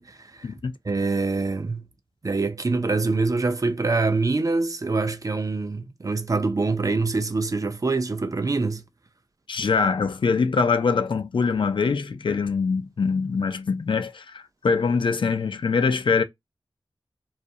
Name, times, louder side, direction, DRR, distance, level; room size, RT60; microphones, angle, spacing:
voice 1, 0.0-0.5 0.8-1.8 2.2-8.8, right 3 dB, 40° right, 0.4 m, -25 dB
voice 2, 9.5-16.2, left 5 dB, 70° left, 0.4 m, -23 dB
2.4 x 2.0 x 2.6 m
wide cardioid pair, 55°, 9 cm